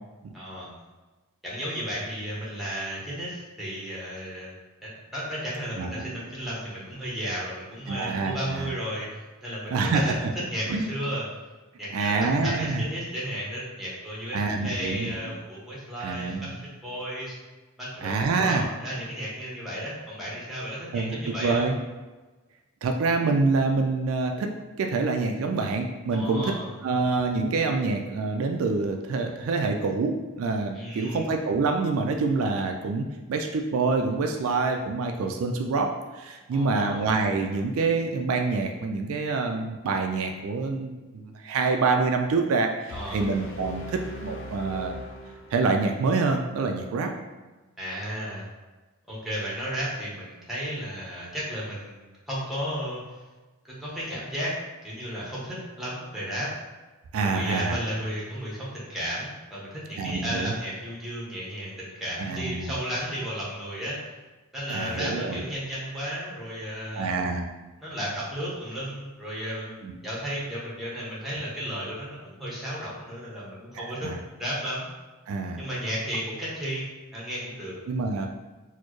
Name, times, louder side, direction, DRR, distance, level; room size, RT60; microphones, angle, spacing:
voice 1, 0.3-0.8 1.4-4.5 4.8-10.1 10.5-11.2 11.8-16.3 16.8-17.4 17.8-21.7 26.1-26.7 30.7-31.3 36.5-37.0 42.9-43.2 47.8-48.4 49.1-53.2 53.6-54.5 54.8-56.5 57.2-64.0 64.5-67.1 67.8-74.1 74.4-74.9 75.6-76.9 77.1-77.8, equal, ahead, -7 dB, 1.0 m, -33 dB
voice 2, 5.8-6.3 7.9-8.7 9.7-10.3 10.7-10.9 11.9-12.8 14.3-15.1 16.0-16.6 18.0-18.6 20.9-21.8 22.8-26.5 26.8-44.9 45.5-47.1 57.1-57.8 60.0-60.5 62.2-62.8 64.7-65.4 66.9-67.5 69.8-70.0 73.7-74.2 75.3-75.6 77.9-78.3, right 4 dB, 75° right, 3 dB, 0.3 m, -26 dB
sound 1, 42.9-45.9, equal, 65° left, 0.4 m, -39 dB
4.2 x 2.1 x 3.0 m, 1.2 s
head